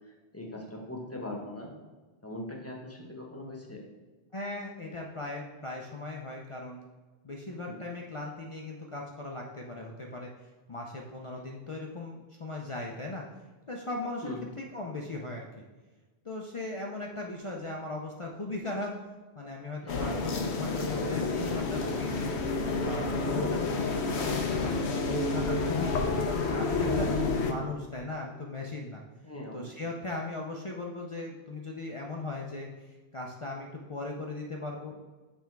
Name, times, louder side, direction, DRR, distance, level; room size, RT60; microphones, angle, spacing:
voice 1, 0.0-1.7 2.2-3.8 7.7-7.8 14.2-14.4 19.8-20.2 23.4-23.5 29.2-29.7, left 1 dB, 15° left, 0 dB, 1.0 m, -40 dB
voice 2, 4.3-6.9 7.2-10.3 10.7-13.3 13.7-15.6 16.2-19.0 19.3-22.4 22.8-29.0 29.5-35.0, left 2 dB, 40° left, -1 dB, 0.5 m, -38 dB
sound 1, 19.9-27.5, left 3 dB, 85° left, 1.0 m, -29 dB
6.8 x 3.5 x 4.5 m, 1.3 s
omnidirectional pair, 1.1 m